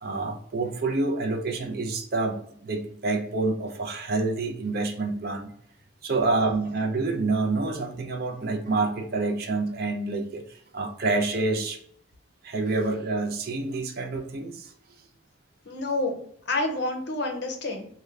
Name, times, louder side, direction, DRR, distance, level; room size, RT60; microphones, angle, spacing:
voice 1, 0.0-5.5 6.0-11.8 12.4-14.7, right 3 dB, 50° right, 4 dB, 0.5 m, -27 dB
voice 2, 15.6-17.9, left 2 dB, 55° left, 4 dB, 0.6 m, -29 dB
3.4 x 2.2 x 3.2 m, 0.63 s
head